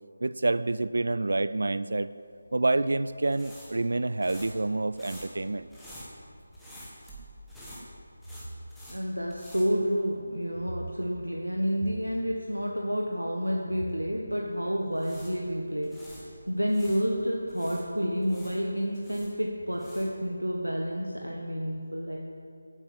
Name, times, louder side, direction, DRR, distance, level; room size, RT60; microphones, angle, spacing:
voice 1, 0.2-2.1 2.5-5.7, right 2 dB, 60° right, 15 dB, 0.4 m, -28 dB
sound 1, 2.4-10.5 10.8-11.0 14.7-17.0 17.5-20.3, equal, ahead, 1.8 m, -48 dB
voice 2, 8.9-22.2, equal, 85° right, 0 dB, 1.4 m, -30 dB
13.0 x 9.0 x 7.4 m, 2.4 s
figure-of-eight pair, 160°, 0 cm